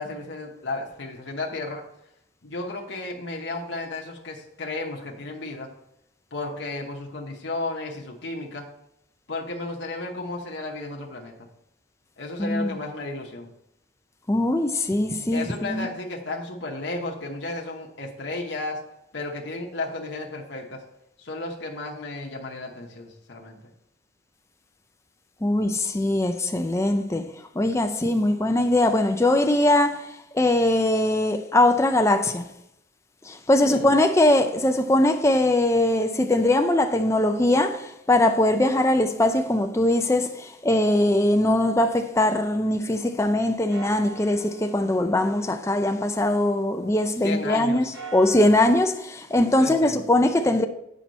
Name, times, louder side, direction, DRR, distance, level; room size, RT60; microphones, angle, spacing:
voice 1, 0.0-1.8 2.4-5.7 6.3-8.7 9.3-11.5 12.2-13.5 15.3-18.8 19.1-20.8 21.2-23.6 33.6-33.9 47.2-47.8 49.6-50.0, left 2 dB, 60° left, 1.0 m, -33 dB
voice 2, 12.4-12.8 14.3-15.9 25.4-27.2 27.6-30.1 30.3-32.5 33.3-50.6, left 1 dB, 15° left, 0.5 m, -21 dB
sound 1, 42.7-43.3 43.7-47.2 47.7-49.0, right 3 dB, 85° right, 3.0 m, -45 dB
7.7 x 5.7 x 4.1 m
head